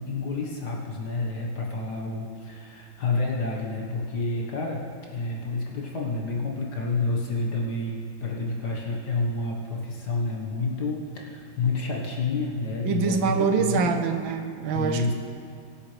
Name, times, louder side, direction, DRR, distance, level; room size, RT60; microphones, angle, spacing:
voice 1, 0.0-13.9 14.7-15.1, left 3 dB, 60° left, -2 dB, 1.9 m, -29 dB
voice 2, 12.8-15.1, right 5 dB, 90° right, 7 dB, 1.7 m, -25 dB
23.0 x 8.7 x 3.3 m, 2.5 s
omnidirectional pair, 2.1 m